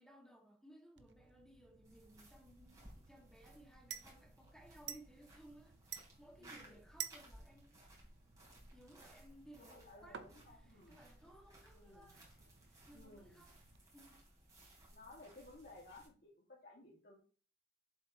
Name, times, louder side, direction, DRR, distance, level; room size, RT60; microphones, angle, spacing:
voice 1, 0.0-7.8 8.7-10.2 10.5-12.4 12.7-13.6 13.9-14.2, right 1 dB, 5° left, 1.9 m, -61 dB
sound 1, 1.0-13.8, right 9 dB, 70° right, 0.8 m, -54 dB
sound 2, 1.8-16.1, right 1 dB, 20° right, 3.3 m, -62 dB
voice 2, 6.4-6.8 9.6-11.0 11.8-12.2 12.9-13.4 14.9-17.2, left 2 dB, 60° left, 2.0 m, -58 dB
7.5 x 7.0 x 3.0 m
head